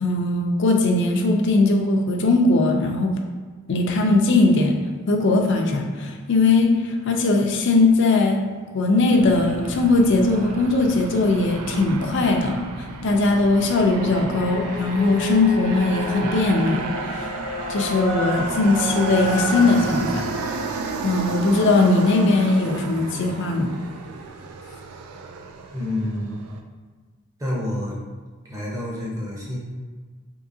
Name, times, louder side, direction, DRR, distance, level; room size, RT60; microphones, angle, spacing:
voice 1, 0.0-3.1 3.7-4.7 5.1-8.4 8.7-12.6 13.0-17.3 17.7-20.2 21.0-23.7, left 2 dB, 55° left, 2 dB, 0.4 m, -19 dB
Aircraft, 9.2-26.6, right 4 dB, 80° right, 0.3 m, -33 dB
sound 1, 14.3-21.6, left 2 dB, 40° right, 1.2 m, -32 dB
voice 2, 25.7-26.4 27.4-28.0 28.4-29.6, left 1 dB, 15° right, -5 dB, 0.7 m, -28 dB
3.7 x 2.8 x 2.6 m, 1.4 s
head